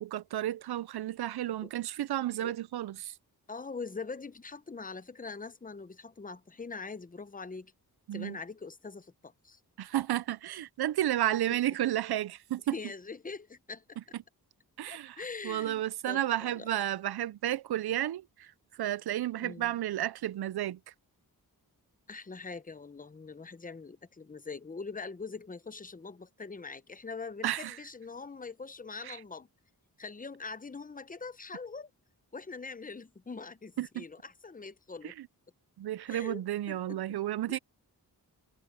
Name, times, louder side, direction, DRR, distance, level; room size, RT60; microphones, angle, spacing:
voice 1, 0.0-3.2 8.1-8.4 9.8-12.7 14.8-18.5 18.8-20.8 27.4-27.8 29.0-29.2 33.8-34.0 35.0-35.3 35.8-37.6, right 13 dB, 80° right, 0.5 m, -32 dB
voice 2, 3.5-7.7 8.1-9.6 12.7-14.0 14.9-16.7 19.4-19.7 22.1-29.5 30.0-31.9 32.3-35.1 36.1-36.4 36.7-37.0 37.5-37.6, left 4 dB, 20° left, 0.7 m, -43 dB
wide cardioid pair, 105°, 38 cm